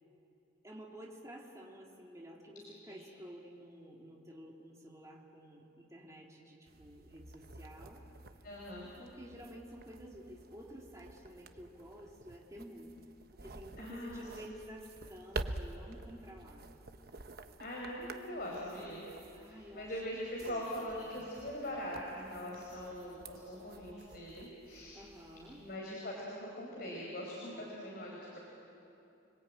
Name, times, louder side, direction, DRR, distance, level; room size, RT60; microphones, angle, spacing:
voice 1, 0.6-8.0 9.0-12.9 13.3-16.7 19.3-21.2 24.9-25.6, equal, 15° right, -1 dB, 2.6 m, -51 dB
sound 1, 6.7-25.8, right 2 dB, 50° right, 1.0 m, -49 dB
voice 2, 8.4-8.9 13.8-14.2 17.6-19.1 19.4-24.9 25.6-28.4, equal, 50° left, -3 dB, 5.1 m, -42 dB
30.0 x 22.0 x 8.9 m, 2.8 s
head